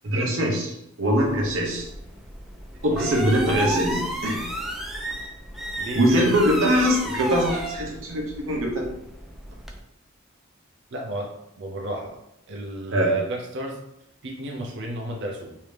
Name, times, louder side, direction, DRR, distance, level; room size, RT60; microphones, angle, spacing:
voice 1, 0.0-1.9 2.8-4.5 6.0-8.9 12.9-13.1, equal, 85° right, -1 dB, 1.0 m, -22 dB
sound 1, 1.2-9.8, right 1 dB, ahead, 0.4 m, -33 dB
voice 2, 2.9-3.3 5.8-6.9 10.9-12.1 12.5-13.8 14.2-15.6, right 2 dB, 65° right, 1 dB, 0.5 m, -32 dB
3.2 x 2.7 x 3.2 m, 0.82 s
head